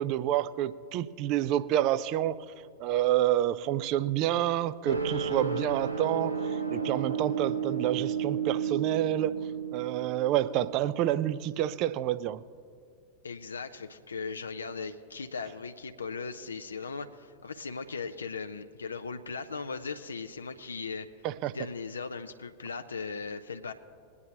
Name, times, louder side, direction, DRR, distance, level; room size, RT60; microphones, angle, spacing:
voice 1, 0.0-2.4 2.8-6.3 6.7-9.3 9.7-12.4 21.2-21.6, right 12 dB, 40° right, 0.4 m, -28 dB
sound 1, 4.8-11.2, right 6 dB, 85° right, 1.1 m, -32 dB
voice 2, 13.2-21.1 21.5-23.7, left 4 dB, 75° left, 0.5 m, -38 dB
21.0 x 9.6 x 2.9 m
figure-of-eight pair, 90°, 0 cm